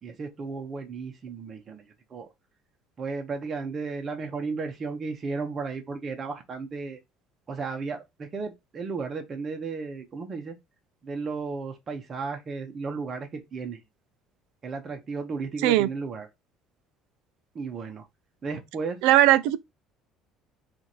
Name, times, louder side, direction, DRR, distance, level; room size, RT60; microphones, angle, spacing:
voice 1, 0.0-2.3 3.0-7.0 7.5-10.6 11.0-13.8 14.6-16.3 17.5-18.1 18.4-19.0, right 4 dB, 25° right, 0.7 m, -34 dB
voice 2, 19.0-19.6, right 14 dB, 85° right, 0.4 m, -18 dB
3.1 x 2.5 x 4.0 m
cardioid pair, 180°, 0 cm